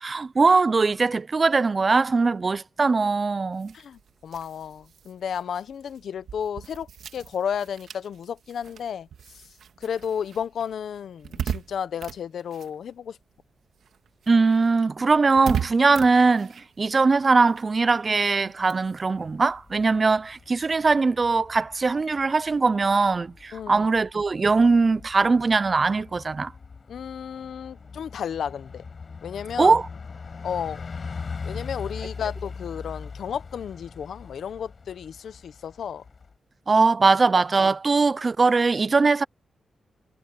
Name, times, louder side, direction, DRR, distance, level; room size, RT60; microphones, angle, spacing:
voice 1, 0.0-3.7 14.3-26.5 29.6-29.9 36.7-39.2, right 4 dB, 30° right, 0.3 m, -21 dB
sound 1, 3.5-13.4 13.7-20.7, right 8 dB, 85° right, 2.1 m, -39 dB
voice 2, 3.7-6.9 7.1-9.1 9.8-13.2 23.5-23.9 26.9-28.8 29.2-29.7 30.4-30.8 31.4-36.0, left 8 dB, 75° left, 0.8 m, -32 dB
Bus, 19.3-36.3, left 5 dB, 40° left, 6.7 m, -41 dB
wide cardioid pair, 130°, 0 cm